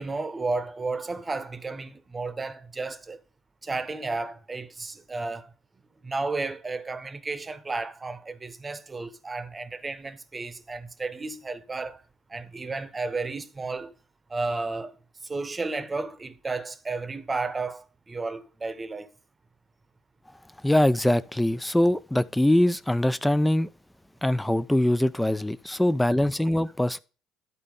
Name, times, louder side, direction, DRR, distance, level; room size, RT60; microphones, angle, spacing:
voice 1, 0.0-3.2 3.6-5.5 6.0-12.0 12.3-13.9 14.3-15.0 15.2-19.1 25.7-25.8, right 3 dB, 25° right, 0.9 m, -33 dB
voice 2, 20.6-23.7 24.2-27.0, left 1 dB, 5° left, 0.4 m, -23 dB
11.0 x 4.2 x 5.3 m
supercardioid pair, 80°, 0 cm